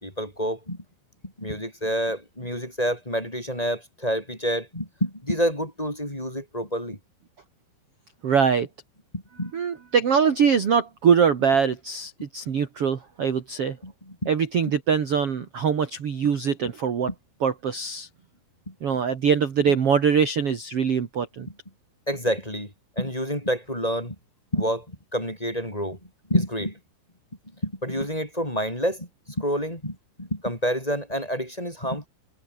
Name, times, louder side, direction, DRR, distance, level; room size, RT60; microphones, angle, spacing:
voice 1, 0.0-0.8 1.4-7.0 9.1-9.5 13.8-14.3 18.7-18.8 22.1-24.2 24.5-26.0 26.3-26.8 27.6-32.1, equal, 10° left, 4.2 m, -28 dB
voice 2, 8.2-8.7 9.5-13.8 14.3-17.1 17.4-18.1 18.8-21.5, right 6 dB, 50° right, 1.7 m, -23 dB
omnidirectional pair, 5.8 m